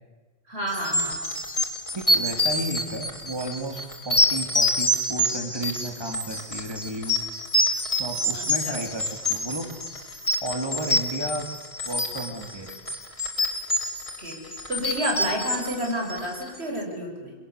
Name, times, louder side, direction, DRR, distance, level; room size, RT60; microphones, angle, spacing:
voice 1, 0.5-1.2 8.3-8.8 14.2-17.3, equal, 85° right, 1 dB, 6.2 m, -30 dB
sound 1, 0.7-16.6, left 1 dB, 30° left, 3.2 m, -26 dB
voice 2, 1.9-7.2 7.7-9.7 10.4-11.5 11.9-12.8, right 1 dB, 25° right, 4 dB, 2.8 m, -33 dB
25.5 x 22.5 x 8.2 m, 1.3 s
omnidirectional pair, 1.1 m